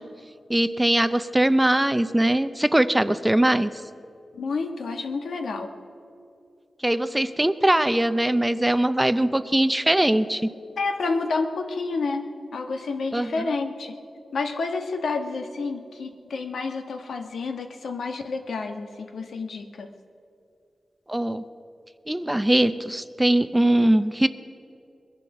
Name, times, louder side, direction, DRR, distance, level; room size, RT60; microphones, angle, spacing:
voice 1, 0.5-3.7 6.8-10.5 13.1-13.5 21.1-21.4 22.1-24.3, right 1 dB, 10° right, 12 dB, 0.5 m, -21 dB
voice 2, 4.3-5.7 10.8-14.0 14.3-19.9, left 4 dB, 80° left, 5 dB, 1.3 m, -29 dB
21.0 x 11.0 x 6.0 m, 2.5 s
wide cardioid pair, 100°, 0 cm